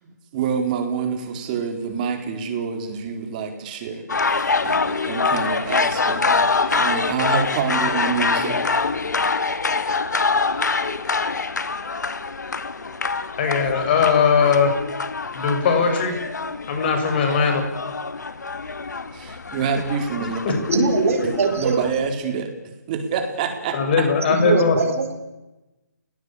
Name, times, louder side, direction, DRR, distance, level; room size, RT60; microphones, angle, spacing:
voice 1, 0.0-8.7 19.1-20.6 21.5-22.5 22.9-24.0, right 6 dB, 25° right, 5 dB, 4.3 m, -27 dB
sound 1, 4.1-22.1, left 4 dB, 75° left, 2.0 m, -25 dB
voice 2, 13.4-14.7 15.3-16.1 16.7-17.6 20.4-21.0 23.7-24.8, left 5 dB, 35° left, 6 dB, 6.0 m, -19 dB
voice 3, 20.7-21.8 24.3-25.1, right 4 dB, 50° right, 7 dB, 4.4 m, -21 dB
30.0 x 17.5 x 8.6 m, 1.0 s
hypercardioid pair, 155°, 9 cm